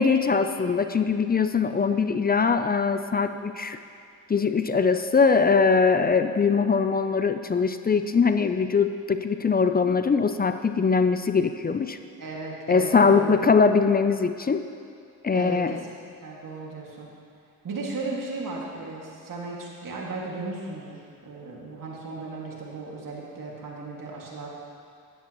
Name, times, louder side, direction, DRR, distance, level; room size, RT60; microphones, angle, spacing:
voice 1, 0.0-3.8 4.3-12.0 12.7-14.6 15.2-15.8, left 5 dB, 25° left, 9 dB, 0.5 m, -22 dB
voice 2, 12.2-13.3 15.3-15.9 16.2-17.1 17.6-24.5, right 3 dB, 60° right, -3 dB, 2.2 m, -36 dB
11.0 x 10.5 x 3.1 m, 2.4 s
supercardioid pair, 55°, 37 cm